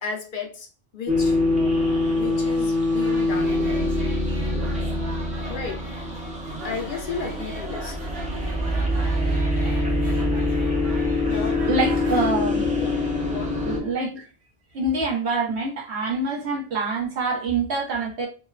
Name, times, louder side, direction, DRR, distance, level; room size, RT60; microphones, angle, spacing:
voice 1, 0.0-0.7 0.9-1.4 2.1-4.0 5.5-5.8 6.6-8.0 11.2-11.6 12.7-12.9 13.2-13.6, left 5 dB, 60° left, 2 dB, 0.7 m, -33 dB
sound 1, 1.1-13.8, left 2 dB, 10° right, 0.4 m, -24 dB
sound 2, 3.0-12.3, right 2 dB, 70° right, 0.8 m, -39 dB
voice 2, 11.5-12.7 13.6-14.3 14.7-18.3, right 3 dB, 90° right, -1 dB, 1.1 m, -26 dB
3.0 x 2.1 x 2.3 m, 0.36 s
omnidirectional pair, 1.1 m